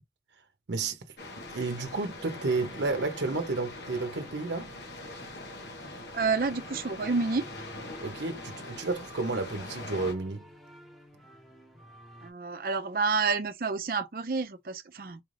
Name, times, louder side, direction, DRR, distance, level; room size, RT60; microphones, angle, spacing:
voice 1, 0.7-1.0 1.5-4.7 8.0-10.5, right 3 dB, 85° right, 0.7 m, -31 dB
sound 1, 1.2-10.1, left 2 dB, 75° left, 1.3 m, -42 dB
voice 2, 6.1-7.5 12.2-15.2, right 4 dB, 50° right, 0.5 m, -29 dB
sound 2, 7.0-12.3, right 1 dB, ahead, 0.9 m, -53 dB
4.6 x 2.5 x 3.2 m
head